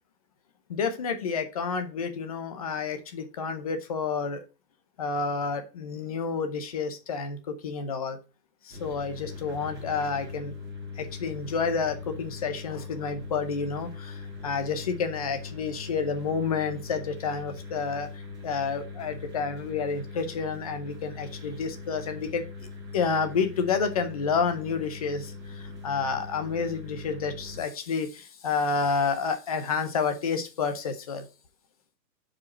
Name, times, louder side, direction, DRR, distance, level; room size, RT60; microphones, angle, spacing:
voice 1, 0.7-4.4 5.0-8.2 8.6-10.6 11.0-22.4 22.9-31.3, left 5 dB, 25° left, 0.6 m, -30 dB
sound 1, 8.7-27.6, left 4 dB, 5° right, 2.3 m, -41 dB
5.0 x 4.6 x 5.9 m
hypercardioid pair, 155°, 50 cm